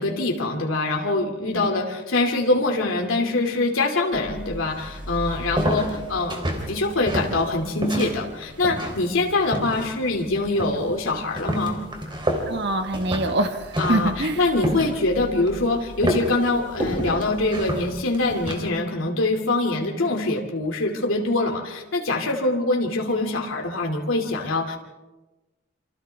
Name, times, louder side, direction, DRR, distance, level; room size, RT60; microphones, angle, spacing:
voice 1, 0.0-11.8 13.8-24.8, left 2 dB, 85° left, 2 dB, 2.6 m, -24 dB
sound 1, 4.1-18.7, equal, 25° right, 3.5 m, -30 dB
voice 2, 12.4-14.4, right 2 dB, 60° right, 6 dB, 1.4 m, -25 dB
28.5 x 26.0 x 3.5 m, 1.2 s
head